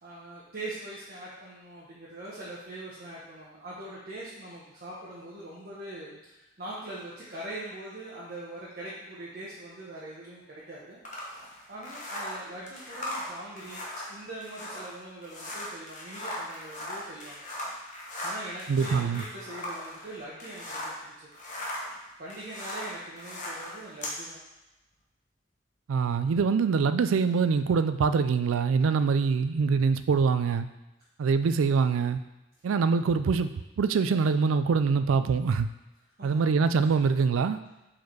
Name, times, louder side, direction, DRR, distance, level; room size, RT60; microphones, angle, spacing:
voice 1, 0.0-11.0 11.7-17.4 18.2-21.1 22.2-24.4 36.2-36.5, right 1 dB, 50° right, -8 dB, 1.1 m, -42 dB
sound 1, 11.0-21.0 21.3-24.2, left 1 dB, 40° left, 1.1 m, -38 dB
voice 2, 18.7-19.2 25.9-30.7 31.2-32.2 32.6-35.7 36.2-37.6, right 5 dB, 85° right, 11 dB, 0.4 m, -24 dB
4.8 x 4.4 x 4.6 m, 0.99 s
head